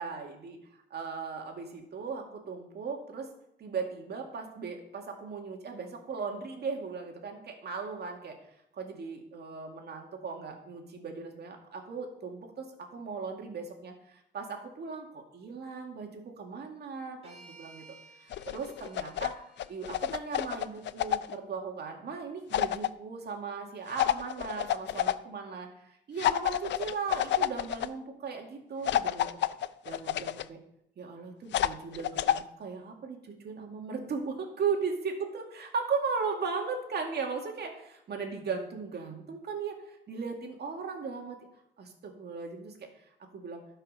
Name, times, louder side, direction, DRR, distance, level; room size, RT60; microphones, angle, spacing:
voice 1, 0.0-3.3 3.6-8.4 8.7-17.8 18.2-29.3 29.9-30.6 31.0-34.9 35.3-41.4 41.8-42.9 43.3-43.6, right 5 dB, 55° right, 3 dB, 2.2 m, -37 dB
sound 1, 17.2-21.4, right 3 dB, 30° right, 2.3 m, -57 dB
sound 2, 18.3-19.3 19.6-21.4 22.5-22.9 24.0-25.1 26.2-27.9 28.9-30.4 31.5-32.4, left 12 dB, 65° left, 0.5 m, -29 dB
12.5 x 5.6 x 5.6 m, 0.80 s
cardioid pair, 90°, 20 cm